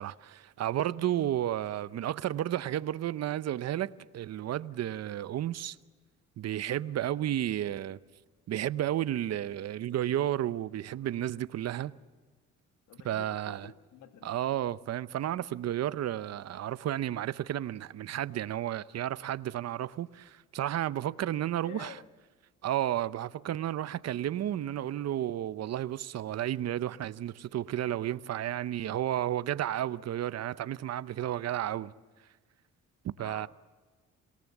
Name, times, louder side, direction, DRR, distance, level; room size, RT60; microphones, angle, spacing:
voice 1, 0.0-5.8 6.4-8.0 8.5-12.0 13.0-13.7 14.2-22.0 22.6-31.9 33.0-33.5, right 12 dB, 55° right, 0.7 m, -32 dB
voice 2, 12.9-14.3 21.6-22.1 33.2-33.5, left 9 dB, 80° left, 1.4 m, -49 dB
26.5 x 18.5 x 7.2 m
cardioid pair, 90°, 30 cm